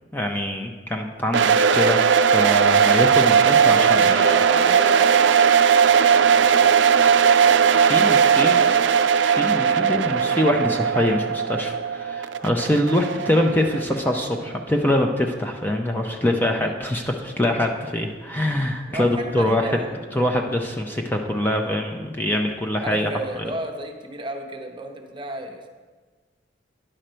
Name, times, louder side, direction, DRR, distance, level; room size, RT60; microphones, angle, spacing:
voice 1, 0.1-4.3 7.7-8.6 9.2-19.8 20.1-23.1, left 1 dB, 10° left, 2 dB, 0.5 m, -24 dB
sound 1, 1.3-14.2, right 7 dB, 80° right, 0.4 m, -18 dB
voice 2, 3.4-9.0 16.6-16.7 18.9-20.0 20.8-21.0 22.8-25.7, right 1 dB, 25° right, 4 dB, 0.8 m, -34 dB
10.0 x 6.4 x 4.3 m, 1.4 s
head